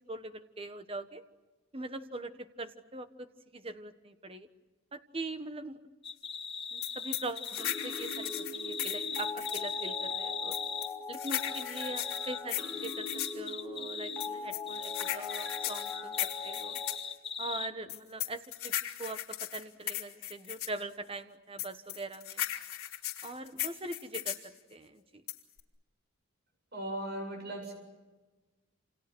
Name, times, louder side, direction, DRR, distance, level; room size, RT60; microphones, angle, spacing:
voice 1, 0.1-1.2 1.7-4.5 4.9-5.8 6.7-10.6 11.1-16.8 17.4-18.7 19.0-22.4 23.2-24.4 24.7-25.2, right 2 dB, 25° right, 9 dB, 1.4 m, -42 dB
sound 1, 6.0-10.9 11.3-14.3 14.7-17.7, left 6 dB, 25° left, 1.2 m, -39 dB
sound 2, 6.8-9.7 10.5-13.4 14.2-17.0 17.9-20.8 21.6-24.5 25.3-25.6, left 13 dB, 85° left, 3.3 m, -37 dB
sound 3, 7.6-17.0, left 3 dB, 5° left, 5.5 m, -41 dB
voice 2, 26.7-27.7, right 1 dB, 50° right, 3 dB, 7.8 m, -37 dB
28.5 x 28.5 x 6.3 m, 1.2 s
head